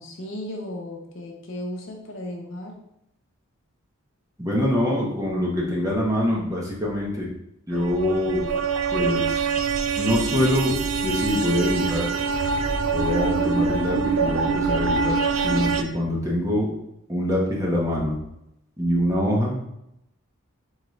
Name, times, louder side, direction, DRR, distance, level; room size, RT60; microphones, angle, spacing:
voice 1, 0.0-2.7, left 1 dB, 55° left, 0 dB, 0.8 m, -35 dB
voice 2, 4.4-7.3 7.7-8.5 8.9-9.5 10.0-10.8 11.0-12.1 12.9-16.7 17.1-18.2 18.8-19.6, left 1 dB, 15° right, -3 dB, 0.8 m, -24 dB
sound 1, 7.7-15.8, right 5 dB, 75° right, 0.4 m, -24 dB
4.0 x 3.7 x 3.2 m, 0.82 s
head